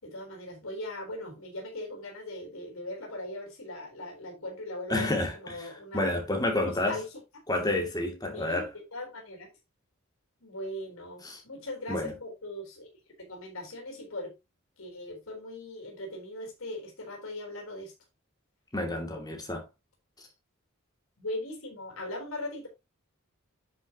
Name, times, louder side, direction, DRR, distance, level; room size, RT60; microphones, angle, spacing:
voice 1, 0.0-6.2 6.5-7.1 8.3-8.6 8.9-9.5 10.4-12.9 13.2-14.3 14.8-17.9 21.2-22.7, left 1 dB, 80° left, 4.0 m, -39 dB
voice 2, 4.9-7.0 7.5-8.7 11.2-11.4 11.9-12.1 18.7-19.6, left 1 dB, 20° left, 2.6 m, -30 dB
10.0 x 6.7 x 3.0 m
head